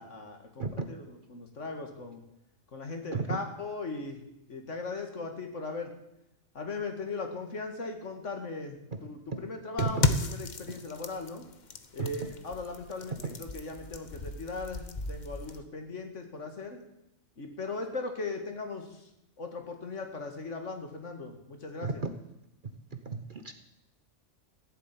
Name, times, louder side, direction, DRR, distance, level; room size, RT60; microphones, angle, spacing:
voice 1, 0.0-2.2 2.7-4.2 4.5-5.9 6.5-11.5 11.9-16.8 17.4-19.1 19.4-22.0, left 3 dB, 60° left, 5 dB, 2.3 m, -38 dB
sound 1, 9.8-15.6, left 3 dB, 35° left, 1.0 m, -35 dB
voice 2, 21.8-22.1 23.1-23.5, right 4 dB, 40° right, 8 dB, 1.1 m, -32 dB
15.5 x 7.4 x 9.6 m, 0.84 s
omnidirectional pair, 1.4 m